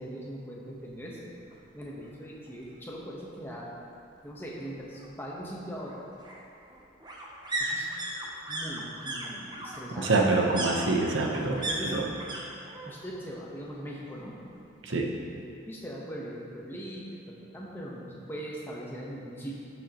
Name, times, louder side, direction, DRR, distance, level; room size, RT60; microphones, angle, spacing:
voice 1, 0.0-1.3 1.7-3.7 4.2-5.9 7.6-7.9 8.4-10.7 11.7-12.1 12.8-14.4 15.7-19.6, equal, 10° left, -4 dB, 1.1 m, -40 dB
sound 1, 1.5-1.6 2.0-2.1 2.3-3.3 4.6-12.4 12.7-13.2 13.5-14.5 14.8-14.9, right 1 dB, 20° right, 0.8 m, -37 dB
voice 2, 10.0-12.1 14.8-15.1, right 3 dB, 85° right, 0 dB, 1.0 m, -26 dB
12.0 x 6.4 x 3.0 m, 2.5 s
head